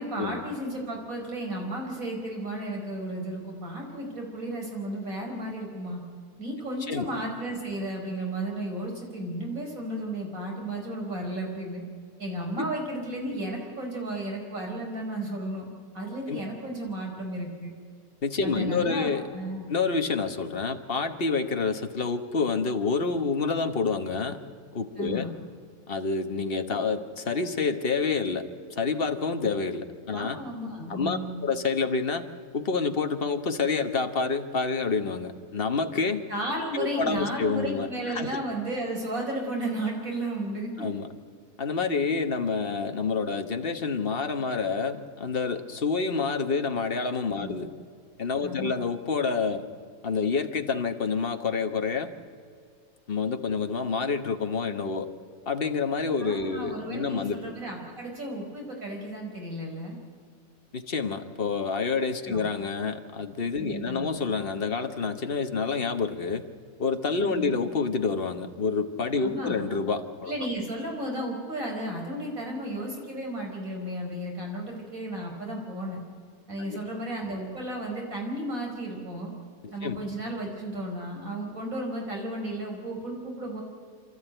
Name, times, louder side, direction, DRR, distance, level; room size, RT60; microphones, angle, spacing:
voice 1, 0.0-6.0 6.4-11.8 12.2-15.7 15.9-17.7 18.4-19.6 25.0-25.3 30.1-31.4 36.3-40.8 47.4-47.6 48.4-48.7 56.2-60.0 62.3-62.5 63.6-64.1 67.2-67.6 69.2-69.6 70.3-76.0 76.5-79.3 79.7-83.6, right 1 dB, 65° right, 0 dB, 5.1 m, -33 dB
voice 2, 18.2-19.3 19.7-24.4 24.7-25.3 25.9-28.4 28.7-30.4 30.9-32.2 32.5-36.2 36.7-38.4 40.8-41.1 41.6-47.7 48.2-49.7 50.0-52.1 53.1-55.1 55.5-57.4 60.7-66.4 66.8-70.3 76.6-76.8 79.6-80.0, left 4 dB, 40° left, 7 dB, 1.4 m, -28 dB
27.5 x 13.0 x 9.1 m, 2.2 s
omnidirectional pair, 1.5 m